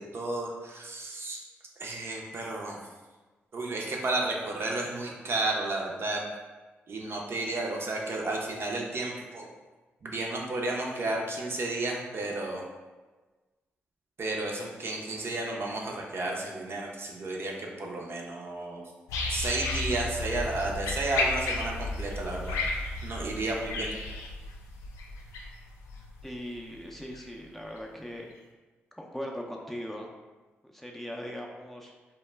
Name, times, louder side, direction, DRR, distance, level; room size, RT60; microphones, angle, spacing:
voice 1, 0.0-1.4 1.8-2.8 3.5-6.2 6.9-9.5 10.0-12.6 14.2-18.8 19.3-23.9, right 2 dB, 50° right, -1 dB, 0.5 m, -32 dB
sound 1, 19.1-27.2 27.8-27.9, left 2 dB, 85° left, 0.3 m, -33 dB
voice 2, 26.2-28.3 29.0-30.1 30.6-31.9, equal, 5° left, -1 dB, 0.4 m, -39 dB
2.1 x 2.1 x 3.3 m, 1.3 s
hypercardioid pair, 40°, 5 cm